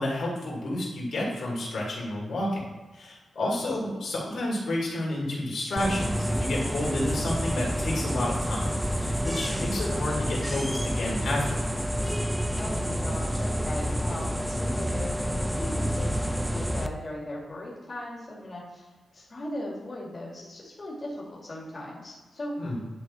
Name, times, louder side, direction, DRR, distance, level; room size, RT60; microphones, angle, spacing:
voice 1, 0.0-11.7 22.6-22.8, left 1 dB, 80° left, -4 dB, 2.7 m, -30 dB
voice 2, 3.4-4.0 12.5-18.9 19.1-22.6, left 1 dB, 35° left, -4 dB, 2.1 m, -38 dB
sound 1, 5.8-16.9, equal, ahead, 0.5 m, -29 dB
10.5 x 4.2 x 4.3 m, 1.3 s
wide cardioid pair, 100°, 0 cm